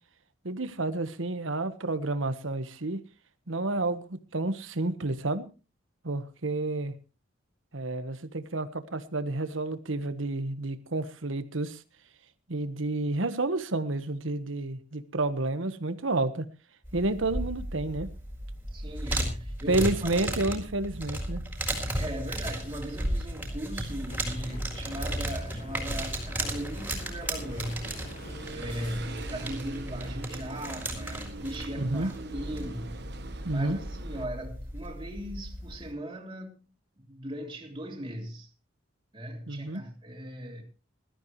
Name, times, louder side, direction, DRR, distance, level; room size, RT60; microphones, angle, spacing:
voice 1, 0.4-3.0 3.5-5.4 6.0-6.9 7.7-11.8 12.5-16.4 16.9-18.1 19.7-21.4 31.8-32.1 33.4-33.8 39.5-39.8, right 2 dB, 85° right, 1.3 m, -30 dB
sound 1, 16.8-35.9, right 1 dB, 10° right, 4.2 m, -35 dB
voice 2, 18.7-20.6 21.9-27.9 28.5-32.9 33.5-36.6 37.0-38.5 39.1-40.6, right 1 dB, 25° right, 3.0 m, -38 dB
sound 2, 24.1-29.5, left 2 dB, 45° left, 1.4 m, -47 dB
sound 3, 26.9-34.3, right 2 dB, 55° right, 1.2 m, -42 dB
20.5 x 13.0 x 3.2 m
head